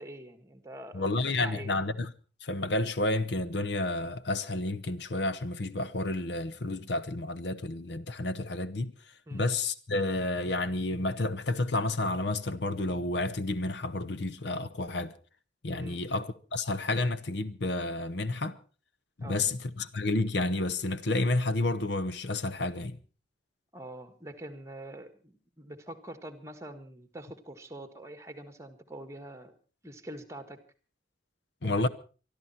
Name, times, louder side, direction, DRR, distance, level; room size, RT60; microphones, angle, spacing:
voice 1, 0.0-1.1 1.4-1.7 9.3-9.5 15.7-16.0 19.2-19.5 23.7-29.6 29.8-30.6 31.6-31.9, right 1 dB, 15° right, 1.7 m, -45 dB
voice 2, 0.9-2.1 2.4-8.9 9.3-15.1 15.6-18.6 19.2-23.0 31.6-31.9, left 2 dB, 65° left, 0.9 m, -30 dB
24.0 x 12.5 x 4.3 m
head